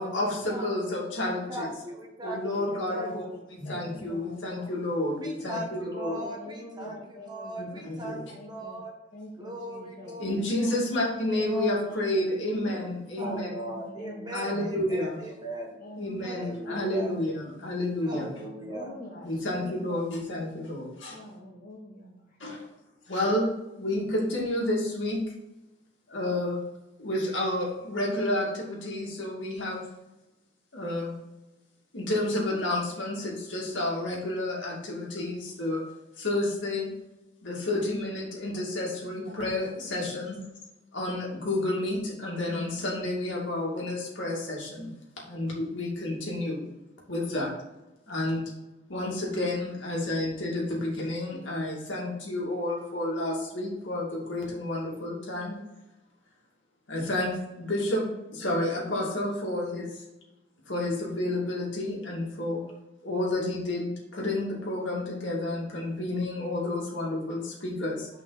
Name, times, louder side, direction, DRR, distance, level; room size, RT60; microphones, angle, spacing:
voice 1, 0.0-1.7 2.2-3.2 3.6-6.2 6.8-6.9 7.6-8.2 10.2-13.5 14.3-15.2 16.0-18.3 19.2-21.2 22.4-22.6 23.1-23.5 23.8-25.3 26.1-26.6 27.0-29.8 30.7-31.1 31.9-35.8 36.2-36.9 37.4-40.4 40.9-44.9 45.3-46.6 47.1-47.5 48.1-48.4 48.9-55.5 56.9-60.0 60.7-62.6 63.0-68.1, left 1 dB, 80° left, -3 dB, 2.5 m, -30 dB
voice 2, 1.5-3.4 5.1-8.9 9.4-11.8 12.6-12.9 13.2-15.7 16.2-17.2 18.0-18.9, right 1 dB, 25° right, -1 dB, 1.6 m, -39 dB
voice 3, 2.5-4.7 5.9-7.6 8.3-8.8 9.1-10.2 11.2-11.5 13.2-14.5 15.8-16.3 16.6-17.0 18.1-18.2 18.6-20.0 21.1-22.7 23.9-24.1, left 1 dB, 50° left, -1 dB, 2.2 m, -45 dB
7.1 x 5.4 x 4.2 m, 0.99 s
head